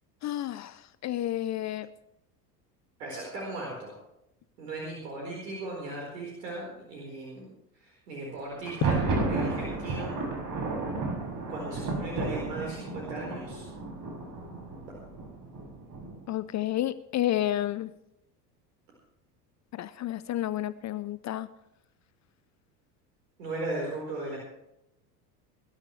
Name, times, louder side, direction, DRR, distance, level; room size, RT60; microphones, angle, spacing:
voice 1, 0.2-1.9 16.3-17.9 19.7-21.5, left 13 dB, 35° left, 15 dB, 0.6 m, -31 dB
voice 2, 3.0-3.9 4.6-7.5 7.7-9.0 9.3-10.1 11.5-13.7 23.4-24.4, right 2 dB, 80° right, -2 dB, 4.6 m, -37 dB
Thunder, 8.6-16.3, right 3 dB, 40° right, 6.8 m, -32 dB
21.0 x 13.0 x 3.3 m, 0.83 s
hypercardioid pair, 75°, 48 cm